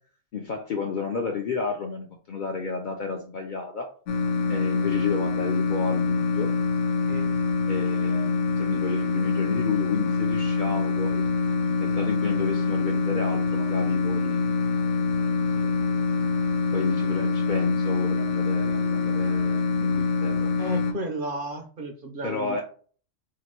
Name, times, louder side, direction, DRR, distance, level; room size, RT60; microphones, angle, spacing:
voice 1, 0.3-3.9 4.5-6.5 7.7-11.3 11.8-14.5 16.7-20.5 22.2-22.6, left 4 dB, 55° left, 3 dB, 0.5 m, -32 dB
sound 1, 4.1-20.9, left 4 dB, 75° left, 0.9 m, -25 dB
voice 2, 20.6-22.6, right 1 dB, 55° right, 4 dB, 0.7 m, -33 dB
2.9 x 2.5 x 4.3 m, 0.43 s
omnidirectional pair, 1.3 m